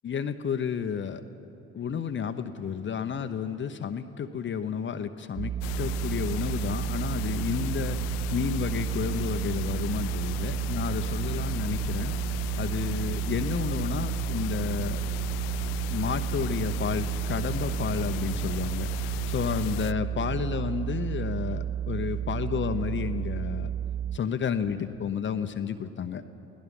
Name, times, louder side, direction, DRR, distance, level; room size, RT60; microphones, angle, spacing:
voice 1, 0.0-1.2 1.7-12.1 12.6-15.0 15.9-23.7 24.1-26.2, left 7 dB, 35° left, 9 dB, 0.9 m, -31 dB
sound 1, 5.4-24.2, right 9 dB, 15° right, 0.4 m, -31 dB
sound 2, 5.6-19.9, left 12 dB, 65° left, 0.5 m, -37 dB
29.0 x 18.0 x 5.4 m, 2.8 s
hypercardioid pair, 60°, 34 cm